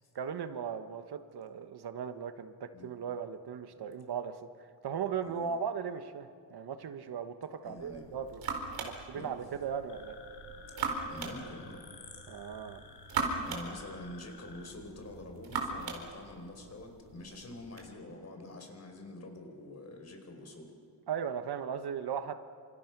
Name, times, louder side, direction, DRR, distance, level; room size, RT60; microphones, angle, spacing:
voice 1, 0.1-8.4 8.8-10.2 12.3-12.8 21.1-22.3, right 7 dB, 60° right, 9 dB, 1.4 m, -38 dB
voice 2, 5.2-5.5 7.6-8.0 9.1-9.3 11.1-11.8 13.5-20.7, left 2 dB, 35° left, 4 dB, 4.8 m, -46 dB
sound 1, 7.8-17.9, right 4 dB, 75° right, 4.5 m, -40 dB
Wind, 9.2-12.7 13.3-14.5 15.1-15.2, equal, 10° left, 2.7 m, -55 dB
sound 2, 9.9-14.7, left 5 dB, 65° left, 4.5 m, -53 dB
29.0 x 27.0 x 6.1 m, 2.3 s
cardioid pair, 140°, 43 cm